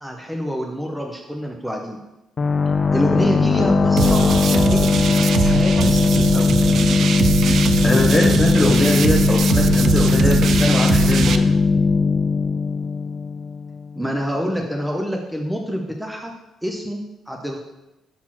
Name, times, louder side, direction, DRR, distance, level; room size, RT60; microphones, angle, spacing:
voice 1, 0.0-2.0 2.9-4.9 5.4-6.5 14.0-16.3 16.6-17.6, equal, 5° right, 1 dB, 0.8 m, -27 dB
sound 1, 2.4-13.8, left 4 dB, 40° left, 0.5 m, -18 dB
sound 2, 4.0-11.4, right 7 dB, 65° right, 0.5 m, -22 dB
voice 2, 7.8-11.5, left 1 dB, 20° left, 0 dB, 1.7 m, -22 dB
5.9 x 4.3 x 5.8 m, 0.96 s
cardioid pair, 90°, 0 cm